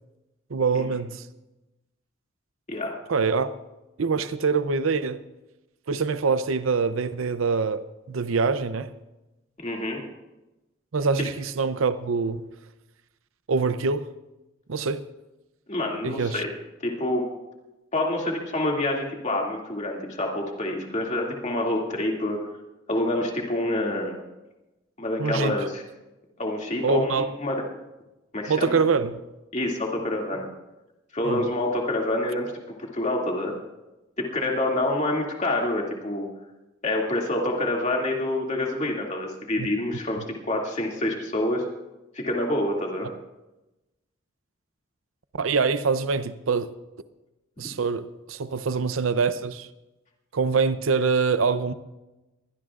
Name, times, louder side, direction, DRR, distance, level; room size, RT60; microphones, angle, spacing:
voice 1, 0.5-1.2 3.1-3.5 4.0-5.2 5.9-8.9 10.9-12.4 13.5-14.1 14.7-15.1 16.0-16.4 25.2-25.6 26.8-27.3 28.5-29.2 31.2-31.4 39.6-39.7 45.3-46.7 47.6-49.7 50.3-51.7, right 4 dB, 85° right, 0.6 m, -24 dB
voice 2, 9.6-10.0 15.7-16.5 16.8-17.3 17.9-22.4 22.9-24.2 25.0-25.8 26.4-27.6 28.3-28.8 29.5-30.4 31.1-32.5 32.8-33.5 34.2-36.3 36.8-41.6 42.1-43.1, left 1 dB, 35° left, 2.4 m, -27 dB
23.0 x 17.0 x 2.5 m
head